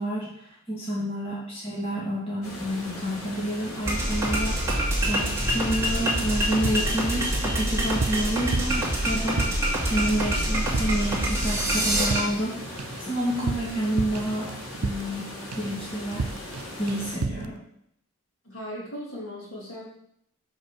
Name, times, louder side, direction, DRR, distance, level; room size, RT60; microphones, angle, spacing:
voice 1, 0.0-4.6 5.0-14.5 14.8-15.3 15.6-16.2 16.8-17.6, right 1 dB, 25° left, -6 dB, 2.1 m, -29 dB
voice 2, 0.7-1.1 18.4-19.9, equal, 70° left, -5 dB, 3.7 m, -38 dB
sound 1, 2.4-17.2, left 1 dB, 90° left, 2.7 m, -39 dB
sound 2, 3.8-12.2, right 1 dB, 10° right, 2.3 m, -26 dB
sound 3, 6.6-7.6 7.8-9.8 10.1-10.4 10.6-11.2 11.4-15.2 15.5-15.8 16.1-16.6 16.9-17.5, right 4 dB, 85° right, 0.5 m, -33 dB
6.6 x 5.2 x 6.4 m, 0.71 s
head